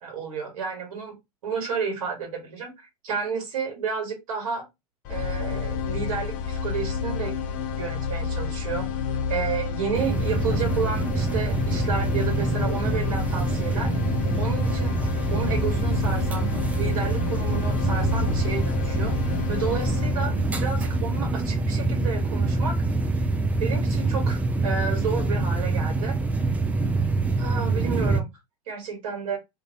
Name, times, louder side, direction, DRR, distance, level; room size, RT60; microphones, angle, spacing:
voice 1, 0.0-1.1 1.4-2.7 3.0-4.6 5.1-7.4 7.8-8.9 9.3-13.9 14.4-14.9 15.3-16.5 16.8-19.1 19.5-20.3 20.6-22.7 23.6-26.2 27.4-28.3 28.7-29.4, right 5 dB, 60° right, 2 dB, 1.5 m, -31 dB
sound 1, 5.0-23.1, left 6 dB, 40° left, 0.7 m, -30 dB
sound 2, 9.9-28.2, right 3 dB, 10° right, 0.3 m, -25 dB
2.6 x 2.6 x 2.8 m, 0.22 s
figure-of-eight pair, 80°, 20 cm